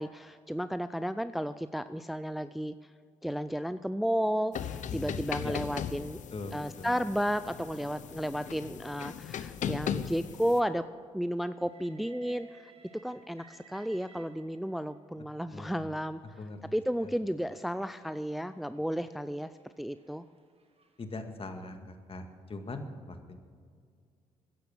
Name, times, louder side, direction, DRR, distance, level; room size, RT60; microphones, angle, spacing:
voice 1, 0.0-2.7 3.2-6.2 6.5-10.9 11.1-16.2 16.7-19.5 19.8-20.2, equal, ahead, 13 dB, 0.5 m, -33 dB
sound 1, 4.5-10.6, left 9 dB, 60° left, 0.7 m, -38 dB
voice 2, 4.9-5.6 6.3-6.9 15.5-15.9 16.4-16.6 17.0-17.1 21.0-21.8 22.1-23.4, left 2 dB, 40° left, 6 dB, 1.8 m, -41 dB
Train, 11.5-14.9 15.8-21.0, right 5 dB, 45° right, 1.7 m, -60 dB
14.0 x 10.5 x 6.4 m, 2.1 s
hypercardioid pair, 50°, 14 cm